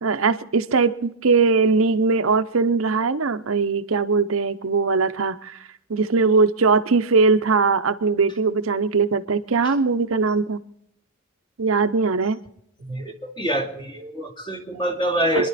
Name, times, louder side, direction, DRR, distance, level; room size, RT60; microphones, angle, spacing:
voice 1, 0.0-5.6 5.9-10.6 11.6-12.4 15.3-15.5, right 4 dB, 80° right, 10 dB, 0.7 m, -20 dB
voice 2, 12.8-15.5, equal, 25° left, 1 dB, 2.5 m, -26 dB
27.0 x 11.0 x 4.1 m, 0.74 s
head